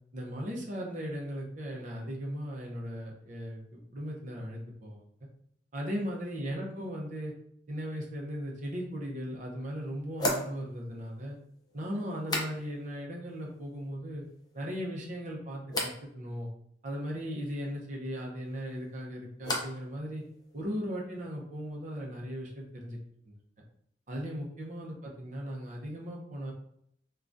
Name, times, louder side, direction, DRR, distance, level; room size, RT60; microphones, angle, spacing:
voice 1, 0.1-5.0 5.7-7.3 7.7-11.4 11.7-14.2 14.5-15.9 16.1-16.5 16.8-20.2 20.5-23.0 23.3-23.4 24.1-26.5, equal, 45° right, -1 dB, 0.6 m, -37 dB
sound 1, 8.9-9.0 10.1-13.0 13.3-13.9 14.2-14.8 15.7-16.0 18.4-19.9 20.2-20.8, left 1 dB, 25° left, 0.5 m, -37 dB
3.5 x 2.3 x 2.5 m, 0.71 s
head